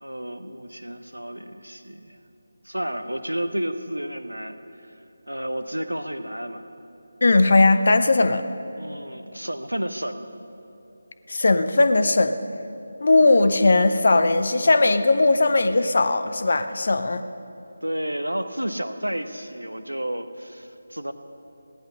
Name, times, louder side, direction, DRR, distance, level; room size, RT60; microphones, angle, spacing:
voice 1, 0.0-2.2 2.6-5.0 5.3-6.6 8.7-10.2 17.8-21.1, right 1 dB, 80° right, 10 dB, 0.9 m, -31 dB
voice 2, 7.2-8.4 11.3-12.4 13.0-17.2, left 2 dB, 50° left, 10 dB, 0.7 m, -18 dB
16.5 x 10.5 x 5.6 m, 2.9 s
figure-of-eight pair, 160°, 0 cm